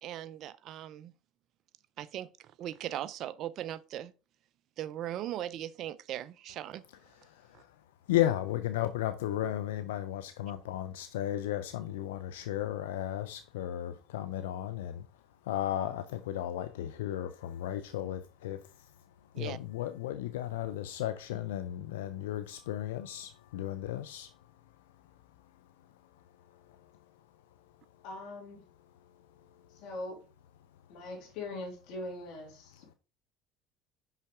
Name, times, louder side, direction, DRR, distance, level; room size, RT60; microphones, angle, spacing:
voice 1, 0.0-1.1 2.0-4.1 4.8-6.8 7.5-7.6 19.4-19.6, right 12 dB, 55° right, 0.4 m, -39 dB
voice 2, 7.3-7.7 8.1-15.1 15.4-18.6 19.3-24.3, left 12 dB, 90° left, 0.5 m, -34 dB
voice 3, 28.0-28.6 29.8-30.2 30.9-33.0, left 2 dB, 70° left, 2.8 m, -41 dB
5.7 x 5.7 x 3.6 m
supercardioid pair, 90°, 0 cm